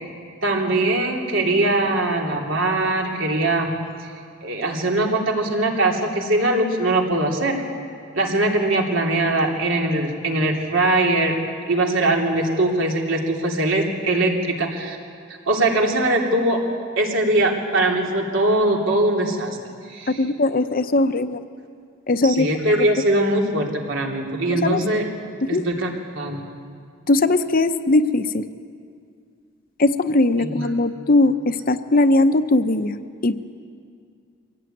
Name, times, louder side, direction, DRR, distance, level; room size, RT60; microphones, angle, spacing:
voice 1, 0.4-3.7 4.0-4.1 4.4-7.6 8.1-11.4 11.7-15.0 15.5-16.6 17.0-19.6 19.9-20.2 22.2-25.0 25.5-25.9 26.1-26.5 30.4-30.6, right 2 dB, 75° right, 0 dB, 3.3 m, -21 dB
voice 2, 20.2-21.4 22.1-22.5 24.5-24.9 25.5-25.7 27.1-28.4 29.8-33.0 33.2-33.4, left 2 dB, 45° left, 10 dB, 0.8 m, -19 dB
23.5 x 17.0 x 9.3 m, 2.3 s
head